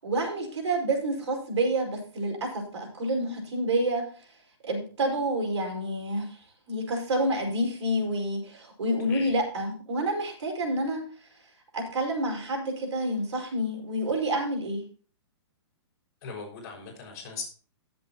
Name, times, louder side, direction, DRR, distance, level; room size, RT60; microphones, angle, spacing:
voice 1, 0.0-4.0 4.6-6.3 6.7-11.0 11.7-14.8, right 1 dB, 80° right, 2 dB, 5.3 m, -28 dB
voice 2, 16.2-17.4, left 5 dB, 35° left, -2 dB, 6.1 m, -39 dB
17.5 x 7.8 x 2.9 m, 0.41 s
hypercardioid pair, 165°, 15 cm